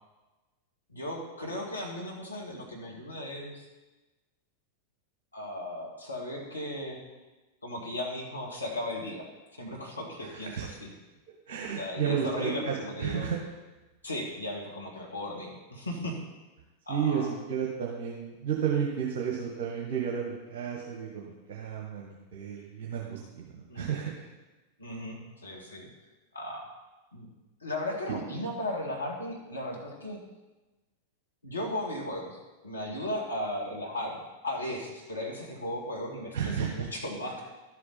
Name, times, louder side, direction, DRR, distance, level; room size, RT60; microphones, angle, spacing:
voice 1, 0.9-3.7 5.3-7.0 7.6-9.3 9.6-10.9 11.7-13.3 14.0-16.2 16.9-17.3 23.7-23.9 24.8-25.9 26.3-26.7 27.1-27.3 27.6-30.2 31.4-37.4, left 1 dB, 80° left, -1 dB, 2.2 m, -36 dB
voice 2, 11.5-13.4 16.9-24.2 36.3-36.9, right 7 dB, 50° right, -2 dB, 1.5 m, -32 dB
12.5 x 7.6 x 4.3 m, 1.1 s
figure-of-eight pair, 90°, 0 cm